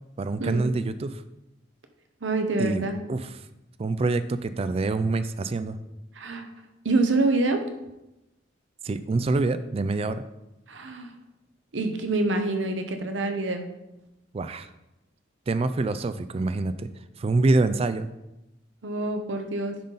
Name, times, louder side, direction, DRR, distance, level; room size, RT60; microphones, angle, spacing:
voice 1, 0.2-1.2 2.6-3.3 3.8-5.8 8.8-10.2 14.3-14.7 15.5-16.9 17.2-18.1, right 3 dB, 30° right, 12 dB, 0.3 m, -26 dB
voice 2, 2.2-3.0 6.2-6.5 6.8-7.6 10.7-11.1 11.7-13.6 18.8-19.7, right 2 dB, 80° right, 6 dB, 0.9 m, -26 dB
10.0 x 4.0 x 3.9 m, 0.94 s
head